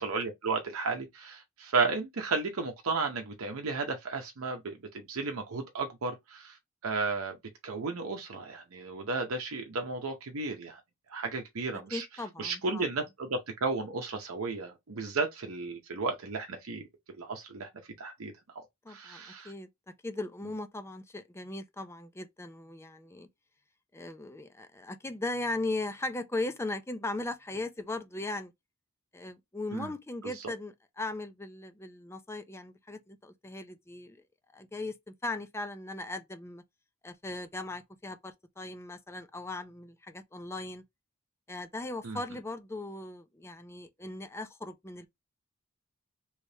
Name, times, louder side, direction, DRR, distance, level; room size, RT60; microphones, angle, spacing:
voice 1, 0.0-6.6 6.8-7.4 7.6-10.8 11.1-12.0 12.4-16.9 17.2-17.7 18.0-18.3 18.9-19.5 29.7-29.9 42.0-42.2, right 4 dB, 85° right, 0.7 m, -33 dB
voice 2, 11.9-12.8 18.8-19.7 20.0-23.3 23.9-28.5 29.1-34.2 34.5-36.6 37.0-40.8 41.5-45.1, left 2 dB, 10° left, 0.4 m, -38 dB
3.3 x 3.1 x 2.8 m
head